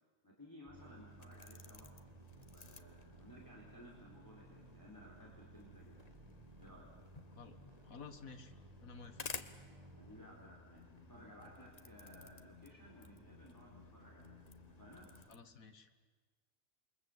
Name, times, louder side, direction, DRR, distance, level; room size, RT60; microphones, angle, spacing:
voice 1, 0.2-1.9 2.4-6.0 6.6-6.9 10.0-14.3 14.8-15.1, equal, 15° left, -3 dB, 4.0 m, -58 dB
sound 1, 0.7-15.3, left 4 dB, 30° left, 1.0 m, -55 dB
sound 2, 0.7-10.2, right 3 dB, 20° right, 1.4 m, -59 dB
sound 3, 2.0-15.2, left 2 dB, 55° left, 3.1 m, -62 dB
voice 2, 7.8-8.5 8.8-9.2 15.3-15.9, left 5 dB, 85° left, 8 dB, 2.0 m, -52 dB
28.0 x 22.5 x 8.0 m, 1.4 s
omnidirectional pair, 1.4 m